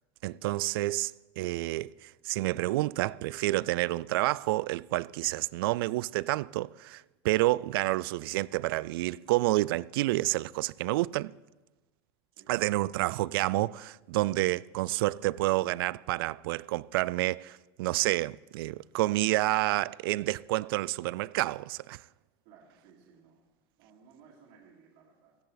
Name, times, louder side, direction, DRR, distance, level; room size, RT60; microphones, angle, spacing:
voice 1, 0.2-11.3 12.5-22.0, right 18 dB, 70° right, 0.4 m, -29 dB
voice 2, 22.4-23.4 23.8-25.4, right 6 dB, 50° right, 2.5 m, -58 dB
16.5 x 15.5 x 4.0 m
supercardioid pair, 175°, 12 cm